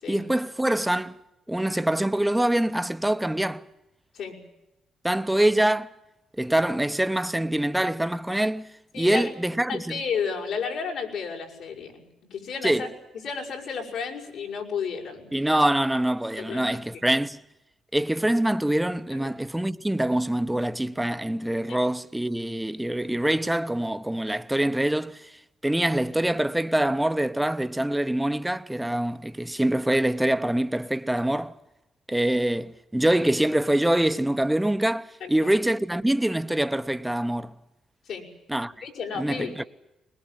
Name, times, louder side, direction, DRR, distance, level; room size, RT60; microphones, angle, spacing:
voice 1, 0.1-1.2 1.5-3.6 5.0-5.9 6.4-8.7 9.0-10.0 12.6-12.9 15.3-17.4 17.9-25.3 25.6-31.5 32.1-37.5 38.5-38.7 39.2-39.6, right 1 dB, 5° right, 0.9 m, -24 dB
voice 2, 8.9-9.3 9.7-12.0 12.3-12.9 13.2-15.3 16.4-16.8 19.2-19.3 21.7-21.8 35.2-35.5 38.1-38.3 38.8-39.5, left 6 dB, 80° left, 5.7 m, -32 dB
21.5 x 20.5 x 9.0 m
cardioid pair, 90°, 0 cm